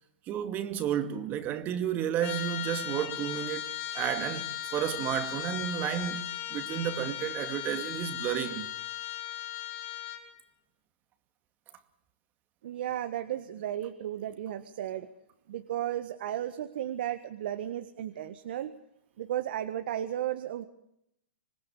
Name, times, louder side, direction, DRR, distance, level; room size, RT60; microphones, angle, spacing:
voice 1, 0.3-8.7, right 10 dB, 30° right, 2.4 m, -32 dB
Trumpet, 2.2-10.3, left 12 dB, 40° left, 6.9 m, -37 dB
voice 2, 12.6-15.1 15.5-18.7 19.2-20.6, right 11 dB, 60° right, 1.6 m, -34 dB
26.0 x 20.0 x 8.4 m
hypercardioid pair, 125°, 6 cm